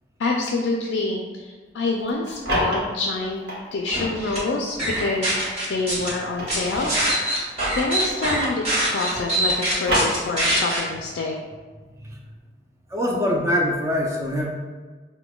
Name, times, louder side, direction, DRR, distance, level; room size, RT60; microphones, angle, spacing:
voice 1, 0.2-3.4 3.7-5.4 5.7-6.9 7.7-11.3, left 3 dB, 85° left, 0 dB, 0.4 m, -26 dB
sound 1, 2.0-4.2 4.7-8.5 8.8-10.7, equal, 65° right, 1.0 m, -29 dB
sound 2, 3.9-4.4 4.8-6.1 6.5-10.8, right 1 dB, 35° right, 1.2 m, -24 dB
voice 2, 12.9-14.5, left 1 dB, 15° right, -1 dB, 0.4 m, -23 dB
5.8 x 2.1 x 2.3 m, 1.4 s
head